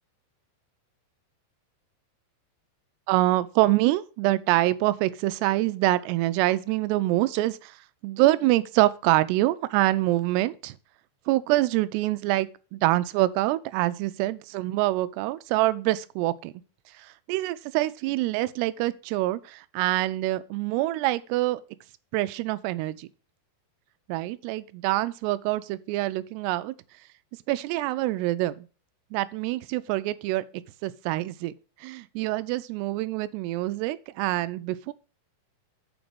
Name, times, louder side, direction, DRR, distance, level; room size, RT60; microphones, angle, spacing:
voice 1, 3.1-7.8 8.0-10.8 11.3-16.5 17.0-21.6 22.1-23.1 24.1-26.7 27.5-28.7 29.1-30.4 30.8-31.5 31.8-34.9, right 17 dB, 90° right, 2.7 m, -25 dB
7.0 x 5.2 x 5.9 m
omnidirectional pair, 4.7 m